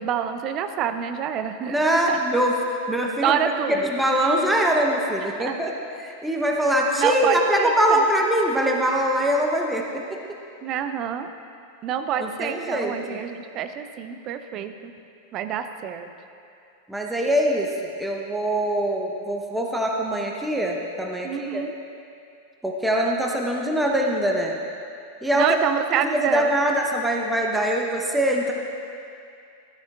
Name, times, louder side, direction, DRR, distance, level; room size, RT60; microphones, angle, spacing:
voice 1, 0.0-2.2 3.2-3.9 5.2-5.6 6.9-8.0 10.6-11.3 11.8-14.9 15.3-16.1 21.2-21.7 25.3-26.7, right 8 dB, 35° right, 9 dB, 0.6 m, -27 dB
voice 2, 1.7-2.6 2.9-3.4 3.7-5.7 6.0-10.0 12.2-13.2 16.9-17.7 18.0-21.6 22.6-24.5 25.2-25.6 25.9-28.5, right 1 dB, 5° right, -1 dB, 0.9 m, -23 dB
13.5 x 13.0 x 2.5 m, 2.5 s
figure-of-eight pair, 90°, 0 cm